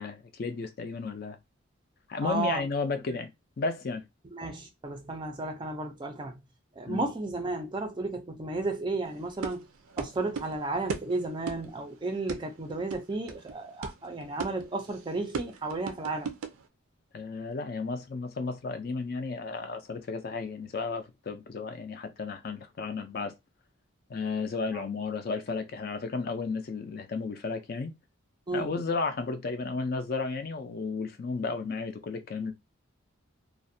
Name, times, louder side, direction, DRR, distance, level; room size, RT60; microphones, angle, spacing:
voice 1, 0.0-1.4 2.1-3.3 3.6-4.0 6.9-7.1 17.1-23.3 24.1-27.9 28.5-32.5, left 4 dB, 45° left, 0.4 m, -33 dB
voice 2, 2.2-2.6 4.3-6.4 6.8-9.7 10.0-16.3 24.7-24.8 28.5-28.7, right 2 dB, 20° right, 0.4 m, -33 dB
sound 1, 9.0-16.7, right 5 dB, 85° right, 0.4 m, -38 dB
2.4 x 2.1 x 2.6 m
head